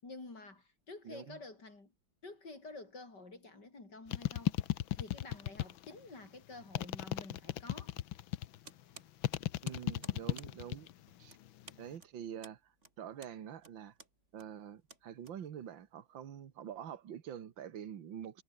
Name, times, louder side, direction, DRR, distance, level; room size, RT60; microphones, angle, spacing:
voice 1, 0.0-1.9 2.2-4.6 4.9-7.9, left 3 dB, 60° left, 5.8 m, -50 dB
voice 2, 1.1-1.4 9.6-10.9 11.2-11.4 11.8-13.9 14.3-18.4, right 9 dB, 75° right, 2.2 m, -46 dB
sound 1, 4.1-6.0 6.7-8.6 9.2-10.9 11.2-11.8, left 13 dB, 85° left, 1.7 m, -35 dB
sound 2, 8.6-15.8, right 2 dB, 35° right, 4.3 m, -57 dB
omnidirectional pair, 2.1 m